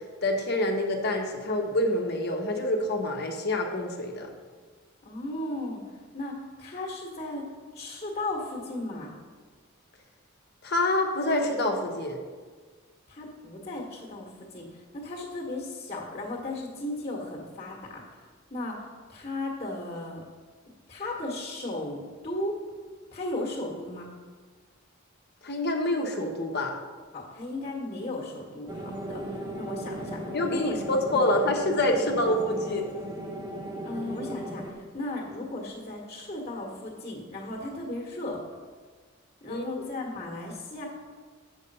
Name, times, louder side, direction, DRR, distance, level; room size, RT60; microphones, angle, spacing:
voice 1, 0.2-4.3 10.6-12.2 25.4-26.7 30.3-32.9 39.5-39.6, left 1 dB, 50° left, 2 dB, 1.1 m, -27 dB
voice 2, 5.0-5.8 6.1-7.5 7.7-9.1 13.1-18.0 18.5-20.2 20.9-22.6 23.1-24.1 27.1-30.2 30.5-31.3 33.8-34.6 34.9-38.4 39.4-40.9, left 2 dB, 30° left, -1 dB, 1.5 m, -35 dB
sound 1, 28.7-34.7, right 1 dB, 20° right, 1.0 m, -37 dB
8.1 x 6.5 x 5.4 m, 1.5 s
head